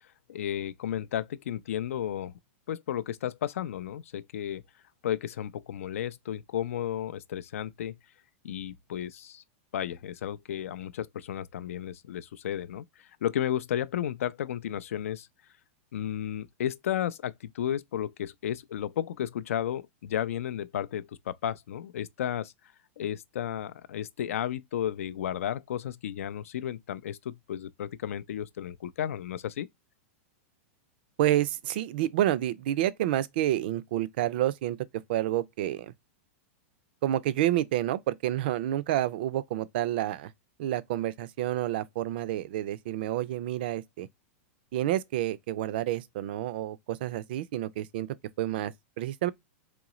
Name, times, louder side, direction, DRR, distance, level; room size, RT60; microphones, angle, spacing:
voice 1, 0.3-2.3 2.7-4.6 5.0-8.0 8.4-9.4 9.7-12.8 13.2-15.3 15.9-22.5 23.0-29.7, left 10 dB, 85° left, 0.4 m, -33 dB
voice 2, 31.2-34.8 35.1-35.9 37.0-40.3 40.6-44.1 44.7-48.1 48.4-49.3, right 13 dB, 45° right, 0.3 m, -29 dB
3.8 x 3.1 x 3.0 m
supercardioid pair, 170°, 7 cm